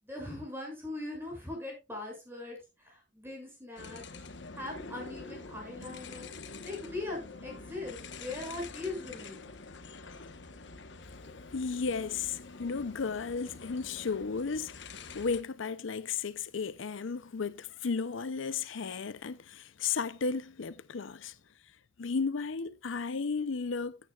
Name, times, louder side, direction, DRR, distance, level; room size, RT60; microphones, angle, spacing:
voice 1, 0.0-4.0 4.6-6.3 6.6-9.5, left 2 dB, 10° right, 7.0 m, -40 dB
sound 1, 3.8-15.4, left 3 dB, 65° left, 1.2 m, -46 dB
voice 2, 11.5-21.3 22.0-24.0, left 5 dB, 80° left, 0.6 m, -34 dB
15.5 x 9.6 x 2.4 m
head